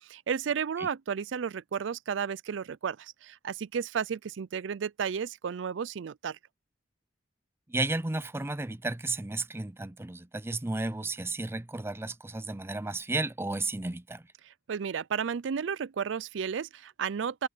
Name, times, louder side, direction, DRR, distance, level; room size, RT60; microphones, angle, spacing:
voice 1, 0.0-6.4 14.4-17.5, right 7 dB, 85° right, 0.4 m, -33 dB
voice 2, 7.7-14.3, right 2 dB, 15° right, 0.5 m, -33 dB
head